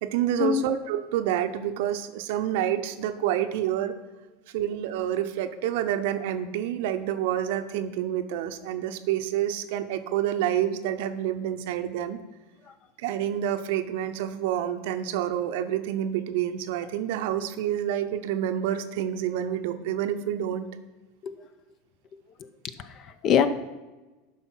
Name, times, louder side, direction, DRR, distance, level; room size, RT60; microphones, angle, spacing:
voice 1, 0.0-3.9 4.5-12.2 13.0-20.7, right 11 dB, 60° right, 9 dB, 0.7 m, -28 dB
voice 2, 22.8-23.5, left 8 dB, 40° left, 12 dB, 0.7 m, -23 dB
11.5 x 4.3 x 5.8 m, 1.1 s
figure-of-eight pair, 80°, 0 cm